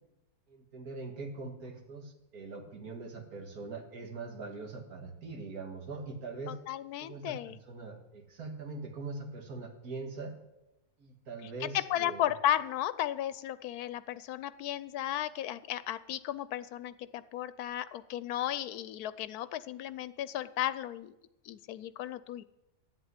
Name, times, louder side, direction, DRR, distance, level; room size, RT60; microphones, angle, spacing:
voice 1, 0.5-6.6 7.0-10.4 11.0-12.2, right 3 dB, 75° right, 3 dB, 2.4 m, -42 dB
voice 2, 6.5-7.6 11.6-21.1 21.4-22.4, left 12 dB, 85° left, 16 dB, 1.1 m, -34 dB
11.0 x 8.0 x 9.6 m, 0.94 s
omnidirectional pair, 1.6 m